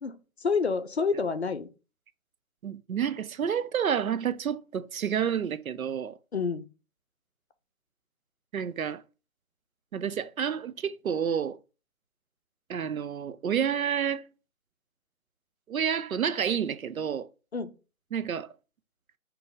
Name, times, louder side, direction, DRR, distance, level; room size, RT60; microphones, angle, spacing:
voice 1, 0.0-1.7 6.3-6.6 17.5-17.7, left 5 dB, 50° left, 0.5 m, -28 dB
voice 2, 2.6-6.2 8.5-9.0 9.9-11.6 12.7-14.2 15.7-17.3 18.1-18.5, right 8 dB, 75° right, 0.6 m, -29 dB
3.6 x 2.9 x 3.9 m
figure-of-eight pair, 165°, 42 cm